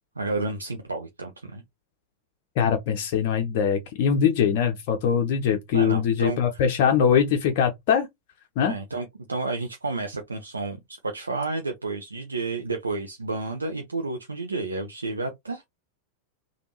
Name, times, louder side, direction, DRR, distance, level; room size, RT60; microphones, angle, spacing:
voice 1, 0.2-1.6 5.7-6.4 8.7-15.6, right 3 dB, 75° right, 0.5 m, -31 dB
voice 2, 2.6-8.1 8.6-8.7, left 7 dB, 50° left, 0.5 m, -22 dB
3.4 x 2.3 x 2.9 m
figure-of-eight pair, 90°, 0 cm